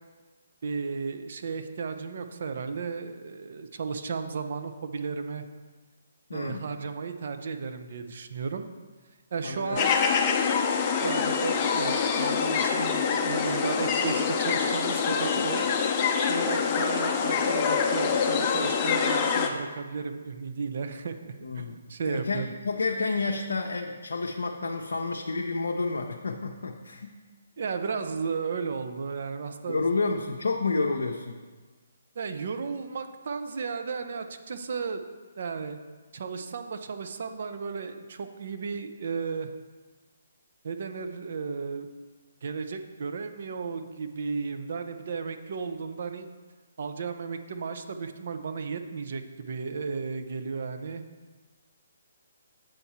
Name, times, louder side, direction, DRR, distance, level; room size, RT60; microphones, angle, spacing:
voice 1, 0.6-5.4 6.3-8.7 9.3-10.0 11.0-15.7 16.3-22.5 27.6-29.8 32.2-35.0 35.4-35.8 36.1-39.5 40.6-41.9 42.4-46.3 46.8-51.0, right 5 dB, 55° right, 7 dB, 0.6 m, -34 dB
voice 2, 6.3-6.6 9.4-9.8 21.4-21.8 22.0-27.1 29.7-31.4, left 3 dB, 75° left, 1 dB, 0.5 m, -30 dB
sound 1, 9.8-19.5, left 6 dB, 30° left, 0.6 m, -25 dB
7.8 x 4.5 x 4.2 m, 1.4 s
figure-of-eight pair, 140°, 0 cm